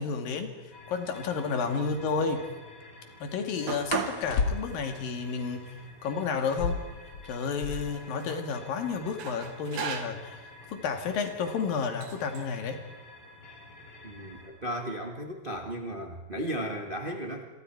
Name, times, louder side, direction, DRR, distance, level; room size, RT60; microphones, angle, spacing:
voice 1, 0.0-2.4 3.2-5.8 6.0-6.8 7.2-12.8, left 5 dB, 75° left, 6 dB, 3.6 m, -31 dB
sound 1, 0.7-14.5, left 2 dB, 30° left, 3.9 m, -50 dB
sound 2, 1.2-1.4 3.8-5.0 6.4-8.1 8.4-8.5 8.7-9.3 9.9-12.4 13.5-13.8 14.2-14.6 15.0-15.7, left 5 dB, 50° left, 1.9 m, -35 dB
sound 3, 3.7-4.3 4.7-4.8 5.6-5.7 6.0-6.9 7.8-8.5 9.2-10.3 11.1-11.3 12.0-12.4, right 7 dB, 85° right, 3.3 m, -37 dB
voice 2, 14.0-17.5, equal, 45° right, 3 dB, 0.6 m, -35 dB
28.0 x 23.0 x 4.6 m, 1.2 s
omnidirectional pair, 4.1 m